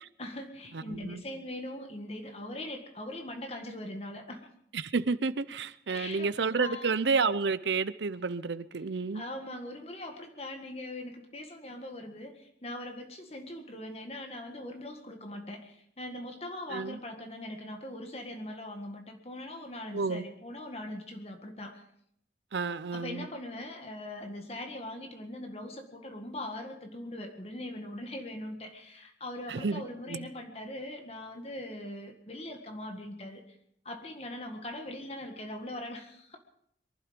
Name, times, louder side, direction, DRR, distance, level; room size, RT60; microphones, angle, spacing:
voice 1, 0.2-4.5 5.9-6.3 6.5-6.9 9.1-21.8 22.9-33.4 33.9-36.4, left 1 dB, 35° left, 1.8 m, -41 dB
voice 2, 0.7-1.2 4.7-9.2 16.7-17.0 19.9-20.3 22.5-23.3 29.5-29.8 30.1-30.3, right 4 dB, 80° right, 0.6 m, -30 dB
23.0 x 12.0 x 5.2 m
head